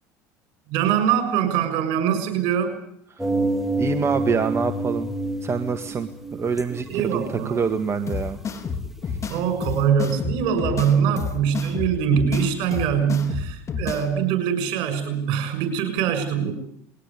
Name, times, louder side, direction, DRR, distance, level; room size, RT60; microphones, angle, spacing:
voice 1, 0.7-2.7 6.9-7.6 9.3-16.5, right 8 dB, 65° right, 9 dB, 6.8 m, -23 dB
sound 1, 3.2-9.8, right 2 dB, 5° right, 3.4 m, -29 dB
voice 2, 3.8-5.1 5.4-7.2 7.5-8.4 10.7-11.2, right 6 dB, 30° right, 8 dB, 1.9 m, -26 dB
sound 2, 8.1-14.1, left 5 dB, 35° left, 3.9 m, -30 dB
21.0 x 18.5 x 9.9 m, 0.72 s
hypercardioid pair, 80°, 9 cm